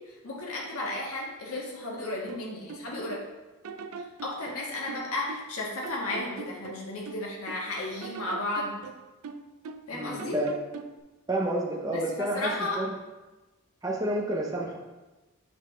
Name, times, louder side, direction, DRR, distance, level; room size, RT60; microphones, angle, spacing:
voice 1, 0.2-3.2 4.2-8.7 9.9-10.4 11.9-12.8, left 2 dB, 85° left, -3 dB, 1.4 m, -33 dB
sound 1, 2.3-3.3 3.6-5.6 5.8-7.7 8.0-9.9 10.2-11.0, right 4 dB, 80° right, 0.4 m, -42 dB
voice 2, 9.9-10.5 11.3-12.5 12.8-12.9 13.8-14.8, right 1 dB, 15° right, -2 dB, 0.7 m, -29 dB
8.6 x 3.6 x 3.2 m, 1.1 s
head